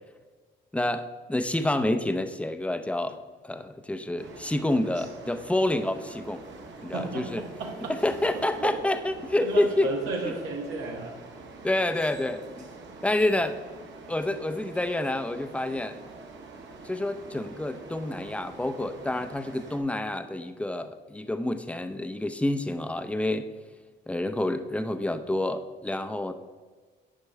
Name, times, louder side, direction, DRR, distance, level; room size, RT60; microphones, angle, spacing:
voice 1, 0.7-6.4 6.8-7.4 7.9-9.9 11.6-12.7 13.0-13.6 14.1-16.0 16.8-23.5 24.1-26.3, left 1 dB, 5° left, 9 dB, 0.6 m, -28 dB
sound 1, 4.2-19.8, right 3 dB, 65° right, 1.5 m, -46 dB
voice 2, 6.9-8.0 8.3-8.8 9.4-11.2, right 3 dB, 90° right, -2 dB, 1.5 m, -33 dB
9.9 x 5.1 x 4.6 m, 1.4 s
cardioid pair, 90°, 20 cm